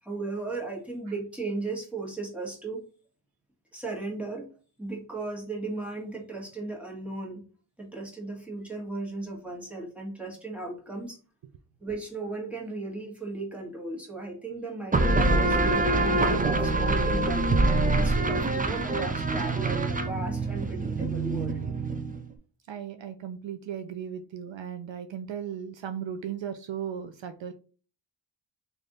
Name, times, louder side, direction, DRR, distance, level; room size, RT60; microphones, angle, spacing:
voice 1, 0.0-2.8 3.7-4.5 4.8-7.4 7.8-11.2 11.8-17.5 17.9-21.7, right 3 dB, 5° right, -2 dB, 1.5 m, -36 dB
sound 1, 14.9-22.3, right 2 dB, 20° right, 0.4 m, -25 dB
voice 2, 22.7-27.5, right 8 dB, 65° right, 8 dB, 0.5 m, -36 dB
3.3 x 2.6 x 3.8 m, 0.38 s
wide cardioid pair, 75°, 48 cm